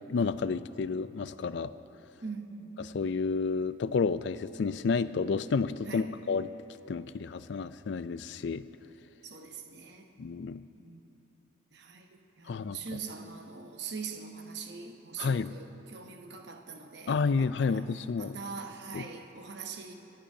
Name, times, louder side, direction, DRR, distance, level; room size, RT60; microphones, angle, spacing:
voice 1, 0.1-1.7 2.8-6.5 6.9-8.6 10.2-10.6 12.5-12.8 15.2-15.5 17.1-18.4 18.9-19.1, left 4 dB, 65° left, 14 dB, 0.4 m, -30 dB
voice 2, 2.2-2.7 5.8-6.1 9.2-10.1 10.8-11.1 11.7-12.1 12.4-17.8 18.2-19.9, right 5 dB, 60° right, 4 dB, 0.8 m, -42 dB
27.5 x 11.5 x 2.7 m, 2.9 s
head